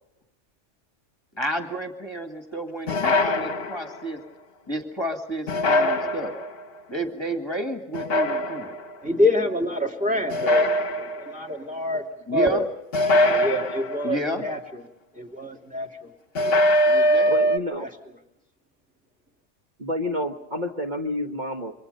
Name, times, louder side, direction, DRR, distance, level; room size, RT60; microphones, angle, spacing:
voice 1, 1.4-4.2 4.7-6.3 6.9-8.7 12.3-12.6 14.0-14.5 16.8-17.5, right 1 dB, 20° left, 4 dB, 2.0 m, -30 dB
sound 1, 2.9-4.1 5.5-6.6 7.9-8.9 10.3-11.5 12.9-14.3 16.4-17.6, left 1 dB, 55° left, 1.2 m, -22 dB
voice 2, 9.0-10.7 11.0-12.1 12.3-12.6 13.2-14.6 15.2-16.1 16.4-16.6 17.0-17.1 17.8-17.9, left 1 dB, 5° right, 3 dB, 2.6 m, -26 dB
voice 3, 17.3-17.9 19.8-21.8, left 1 dB, 40° right, 2 dB, 1.5 m, -29 dB
28.5 x 24.5 x 5.4 m, 0.79 s
omnidirectional pair, 1.2 m